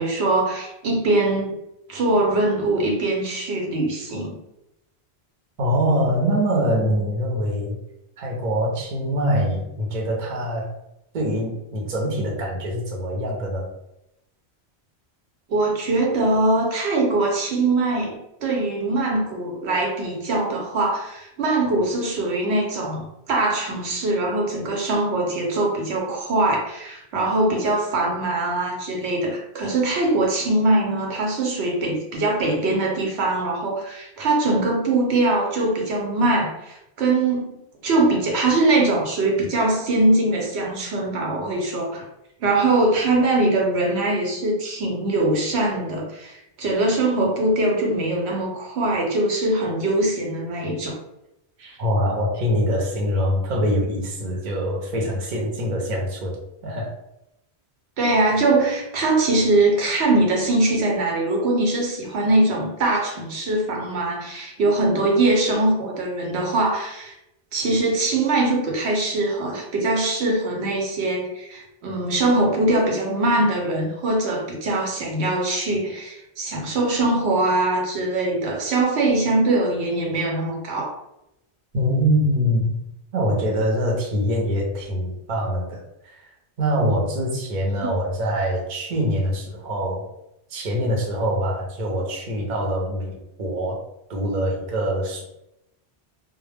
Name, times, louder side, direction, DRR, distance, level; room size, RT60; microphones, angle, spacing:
voice 1, 0.0-1.6 1.9-4.4 15.5-42.0 42.4-51.0 51.6-51.8 58.0-67.1 67.5-81.0 87.8-88.0, right 2 dB, 75° right, 0 dB, 0.9 m, -22 dB
voice 2, 5.6-7.8 8.2-10.7 11.1-13.7 51.8-56.9 81.7-82.8 83.1-85.8 86.6-90.1 90.5-93.8 94.1-95.2, equal, 50° right, -1 dB, 0.7 m, -24 dB
2.2 x 2.0 x 3.2 m, 0.86 s
omnidirectional pair, 1.1 m